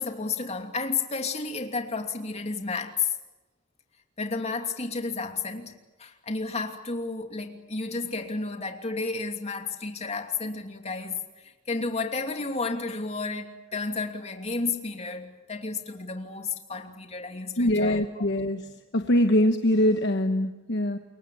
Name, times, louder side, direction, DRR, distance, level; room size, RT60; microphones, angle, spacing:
voice 1, 0.0-3.1 4.2-5.7 6.0-11.2 11.4-18.2, left 4 dB, 35° left, 5 dB, 2.8 m, -32 dB
voice 2, 17.6-18.6 18.9-21.0, left 1 dB, 60° left, 7 dB, 1.2 m, -23 dB
28.5 x 23.0 x 8.6 m, 1.1 s
head